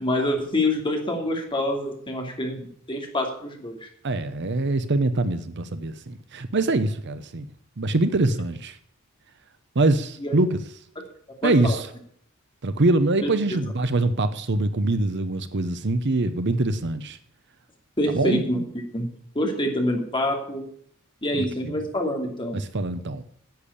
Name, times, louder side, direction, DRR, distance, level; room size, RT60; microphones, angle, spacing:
voice 1, 0.0-3.9 10.2-10.3 11.4-11.8 13.2-13.3 18.0-19.1 19.3-20.6 21.2-22.6, left 1 dB, 25° left, 2.8 m, -26 dB
voice 2, 4.0-7.5 7.8-8.8 9.7-10.6 11.4-11.9 12.6-17.2 18.1-18.4 21.3-21.7 22.5-23.2, right 2 dB, 55° right, 0.8 m, -24 dB
10.5 x 8.5 x 8.6 m
head